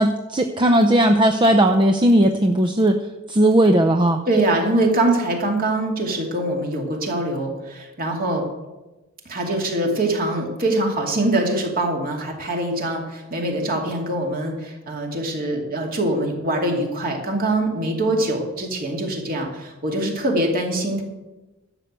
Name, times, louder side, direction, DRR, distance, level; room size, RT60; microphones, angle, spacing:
voice 1, 0.0-3.0 3.3-4.2, right 1 dB, 20° right, 6 dB, 0.6 m, -17 dB
voice 2, 4.3-8.4 9.3-21.0, right 1 dB, 45° right, 1 dB, 2.6 m, -23 dB
12.0 x 6.8 x 8.8 m, 1.1 s
head